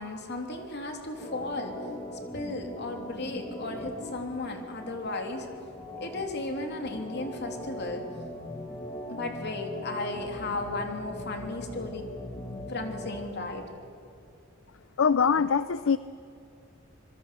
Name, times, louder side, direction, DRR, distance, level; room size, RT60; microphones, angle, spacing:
voice 1, 0.0-1.8 2.3-5.5 6.0-8.0 9.1-12.1 12.7-13.7, left 2 dB, 55° left, 4 dB, 3.1 m, -35 dB
Organ, 1.1-13.3, left 1 dB, 20° left, 2.0 m, -41 dB
voice 2, 15.0-16.0, left 6 dB, 75° left, 15 dB, 0.5 m, -23 dB
26.0 x 22.0 x 6.9 m, 2.5 s
head